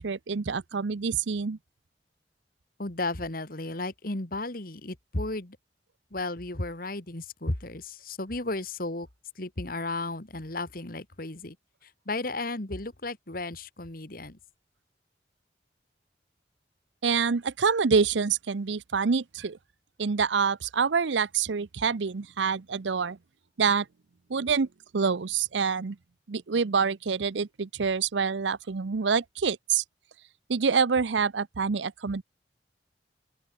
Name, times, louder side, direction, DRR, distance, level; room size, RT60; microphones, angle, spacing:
voice 1, 0.0-1.6 17.0-19.6 20.0-23.2 23.6-23.9 24.3-24.7 24.9-26.0 26.3-29.8 30.5-32.2, right 5 dB, 80° right, 0.6 m, -26 dB
voice 2, 2.8-5.6 6.1-9.1 9.4-11.6 11.8-14.4, left 2 dB, 50° left, 2.1 m, -34 dB
open air
head